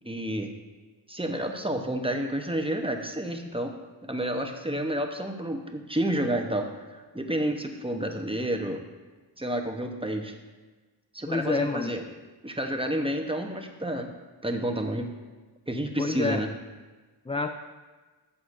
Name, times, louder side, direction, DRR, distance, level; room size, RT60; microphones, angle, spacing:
voice 1, 0.0-0.5 1.1-3.7 4.0-8.8 9.4-10.3 11.1-12.0 12.4-14.1 14.4-15.1 15.7-16.5, right 1 dB, 10° right, 4 dB, 0.9 m, -30 dB
voice 2, 11.3-12.0 16.0-16.4 17.3-17.6, left 3 dB, 15° left, 6 dB, 0.3 m, -28 dB
13.0 x 7.1 x 2.6 m, 1.3 s
wide cardioid pair, 55°, 44 cm